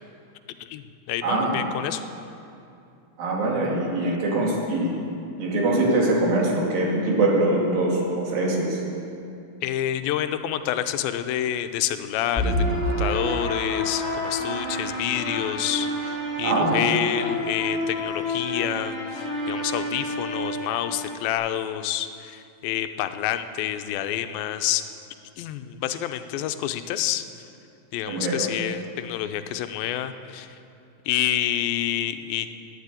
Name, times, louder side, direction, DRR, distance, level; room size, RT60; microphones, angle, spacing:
voice 1, 0.6-2.0 9.6-24.8 25.4-27.2 27.9-30.6 31.1-32.5, left 11 dB, 90° left, 10 dB, 2.5 m, -28 dB
voice 2, 1.2-1.6 3.2-5.0 5.4-8.8 16.4-16.8 28.1-28.5, right 2 dB, 80° right, -3 dB, 4.1 m, -23 dB
sound 1, 12.3-21.3, equal, 5° left, 3.1 m, -28 dB
12.0 x 10.0 x 8.9 m, 2.6 s
omnidirectional pair, 4.1 m